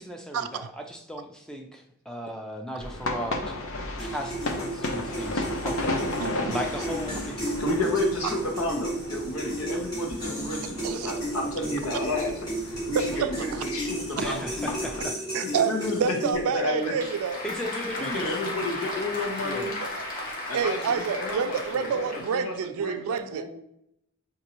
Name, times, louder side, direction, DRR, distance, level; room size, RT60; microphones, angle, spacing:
voice 1, 0.0-3.6 4.0-6.0 6.5-7.6 14.2-15.2 17.4-18.3 19.4-19.7, equal, 5° left, 2 dB, 0.4 m, -36 dB
sound 1, 2.8-15.0, left 2 dB, 70° left, 0.6 m, -35 dB
sound 2, 4.0-16.6, right 1 dB, 20° left, 1.4 m, -34 dB
voice 2, 7.6-12.5 12.9-14.5 15.4-16.0 16.5-16.9 18.0-19.7 20.5-23.5, left 2 dB, 90° left, 0 dB, 1.0 m, -31 dB
voice 3, 12.9-13.6 14.2-14.3 15.3-17.4 19.8-20.1 20.5-23.5, right 6 dB, 85° right, 10 dB, 0.3 m, -28 dB
Applause / Crowd, 16.3-22.5, left 2 dB, 40° left, 0.9 m, -35 dB
5.3 x 2.6 x 2.9 m, 0.77 s
head